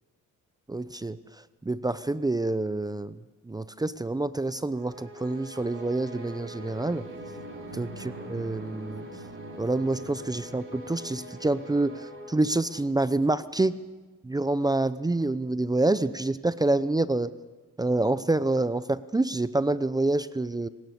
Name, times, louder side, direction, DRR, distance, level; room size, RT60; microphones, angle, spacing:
voice 1, 0.7-1.2 1.6-3.2 3.5-7.1 7.7-9.1 9.6-13.8 14.2-17.3 17.8-20.7, right 2 dB, 15° right, 15 dB, 0.7 m, -27 dB
sound 1, 4.7-13.1, equal, 40° right, 4.3 m, -42 dB
26.5 x 17.0 x 8.0 m, 1.3 s
cardioid pair, 90°, 30 cm